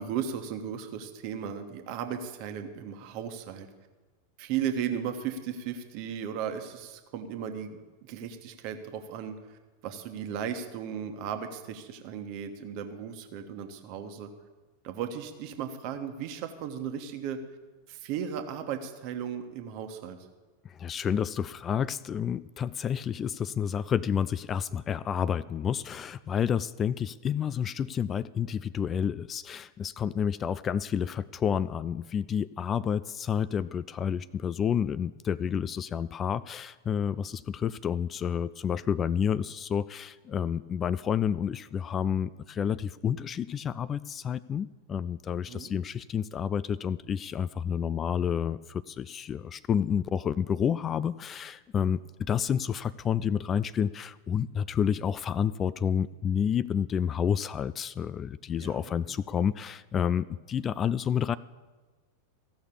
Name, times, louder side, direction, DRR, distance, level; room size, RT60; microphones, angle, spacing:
voice 1, 0.0-3.7 4.4-9.3 9.8-14.3 14.8-17.4 17.9-20.2 45.5-45.7 58.6-59.2, right 8 dB, 45° right, 7 dB, 1.3 m, -36 dB
voice 2, 20.6-61.4, left 8 dB, 25° left, 18 dB, 0.3 m, -29 dB
15.0 x 6.3 x 8.7 m, 1.3 s
figure-of-eight pair, 90°, 0 cm